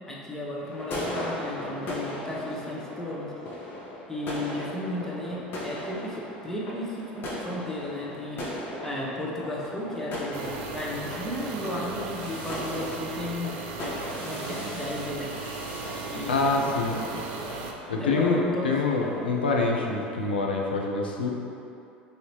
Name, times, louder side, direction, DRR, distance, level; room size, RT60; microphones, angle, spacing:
voice 1, 0.1-3.3 4.1-8.4 8.8-13.6 14.2-15.6 16.1-16.7 18.0-18.7, left 1 dB, 10° left, -5 dB, 0.7 m, -34 dB
sound 1, 0.6-20.1, left 1 dB, 40° left, 1.0 m, -38 dB
sound 2, 10.3-17.7, right 4 dB, 55° right, 0.4 m, -37 dB
voice 2, 16.3-17.0 17.9-21.3, left 3 dB, 80° left, 0 dB, 0.5 m, -25 dB
4.9 x 2.7 x 3.0 m, 2.7 s
figure-of-eight pair, 70°, 5 cm